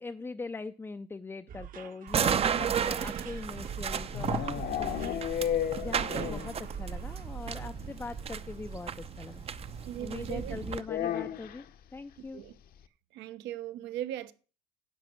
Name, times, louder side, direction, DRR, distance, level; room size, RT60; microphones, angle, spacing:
voice 1, 0.0-9.5 10.0-11.6 11.9-12.4, left 3 dB, 10° left, 0.5 m, -42 dB
sound 1, 1.5-7.9, right 8 dB, 50° right, 1.1 m, -45 dB
sound 2, 2.1-10.8, right 7 dB, 30° right, 0.7 m, -34 dB
sound 3, 3.6-6.6 6.9-7.0 7.3-7.4 7.7-7.8 9.0-9.1 10.8-11.7, left 10 dB, 50° left, 0.9 m, -33 dB
voice 2, 9.8-10.6 12.3-12.5 13.1-14.3, right 12 dB, 70° right, 1.0 m, -38 dB
10.5 x 5.2 x 7.6 m
supercardioid pair, 100°, 19 cm